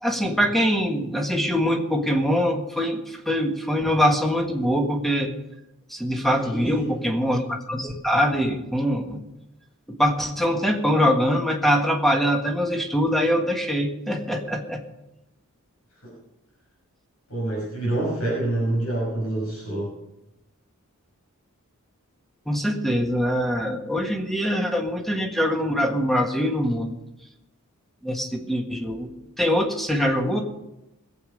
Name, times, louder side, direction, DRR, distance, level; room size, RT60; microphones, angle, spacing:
voice 1, 0.0-5.3 5.9-9.2 9.9-14.8 22.5-27.0 28.0-29.1 29.4-30.4, equal, ahead, 3 dB, 1.6 m, -23 dB
voice 2, 6.4-6.9 16.0-16.2 17.3-19.9, right 1 dB, 75° left, -4 dB, 6.2 m, -27 dB
20.5 x 8.2 x 5.2 m, 0.91 s
head